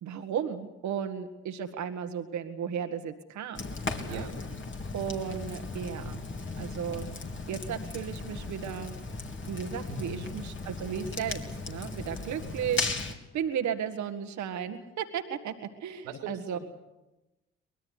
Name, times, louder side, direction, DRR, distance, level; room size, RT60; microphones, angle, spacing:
voice 1, 0.0-3.6 4.0-4.2 4.9-6.2 6.6-7.1 7.5-8.9 9.5-15.5 15.8-16.6, right 8 dB, 65° right, 7 dB, 1.7 m, -35 dB
Fire, 3.5-13.1, left 3 dB, 40° left, 3.2 m, -37 dB
voice 2, 9.9-10.4 12.2-12.4 16.0-16.6, right 3 dB, 85° right, 5 dB, 3.1 m, -41 dB
24.0 x 20.5 x 8.2 m, 1.0 s
hypercardioid pair, 45°, 31 cm